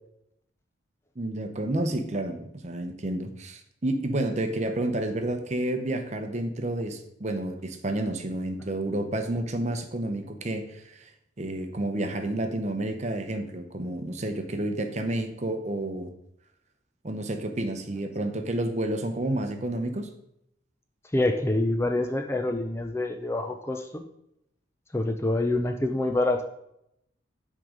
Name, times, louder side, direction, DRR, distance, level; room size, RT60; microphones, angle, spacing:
voice 1, 1.2-11.1 11.4-16.1 17.0-20.1, right 1 dB, 35° right, 7 dB, 0.7 m, -30 dB
voice 2, 21.1-24.0 24.9-26.4, left 2 dB, 15° left, 5 dB, 0.4 m, -26 dB
9.1 x 3.8 x 5.0 m, 0.78 s
head